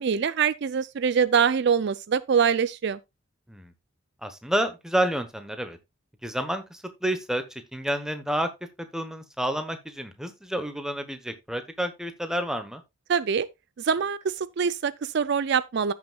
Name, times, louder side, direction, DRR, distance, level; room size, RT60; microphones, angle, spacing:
voice 1, 0.0-3.0 13.1-13.5 13.8-15.9, right 6 dB, 55° right, 0.4 m, -24 dB
voice 2, 4.2-5.8 6.2-8.5 8.9-12.8, right 1 dB, 5° right, 1.1 m, -29 dB
15.0 x 6.0 x 2.4 m
head